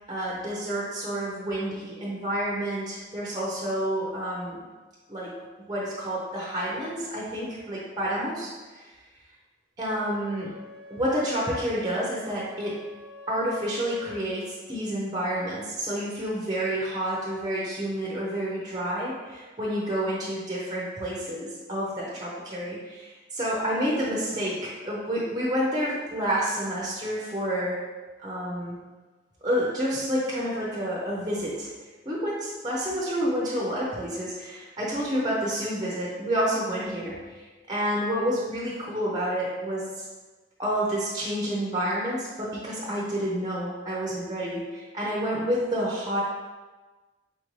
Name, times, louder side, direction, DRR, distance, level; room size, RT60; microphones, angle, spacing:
voice 1, 0.1-4.6 5.1-5.3 5.7-8.9 9.8-10.5 10.9-12.8 13.3-27.8 28.2-28.8 29.4-31.7 32.1-37.4 37.7-40.0 40.6-46.2, equal, 25° right, -5 dB, 0.6 m, -29 dB
Wind instrument woodwind instrument, 9.9-14.4, left 2 dB, 90° right, 0.6 m, -47 dB
4.0 x 2.6 x 3.1 m, 1.3 s
head